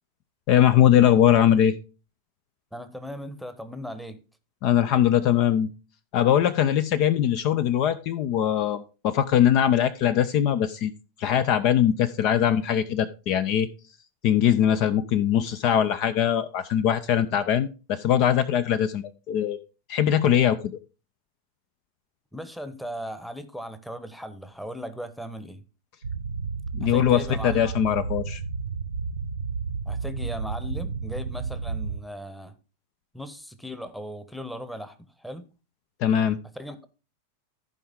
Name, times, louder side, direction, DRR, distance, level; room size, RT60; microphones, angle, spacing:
voice 1, 0.5-1.7 4.6-5.7 6.1-10.9 11.2-13.7 14.2-19.6 19.9-20.8 26.7-28.4 36.0-36.4, left 10 dB, 40° left, 0.6 m, -21 dB
voice 2, 2.7-4.2 22.3-25.6 26.8-27.6 29.8-32.5 33.1-35.5 36.5-36.8, equal, ahead, 1.1 m, -37 dB
sound 1, 26.0-32.0, right 5 dB, 75° right, 0.8 m, -31 dB
14.5 x 5.2 x 3.6 m
figure-of-eight pair, 90°, 0 cm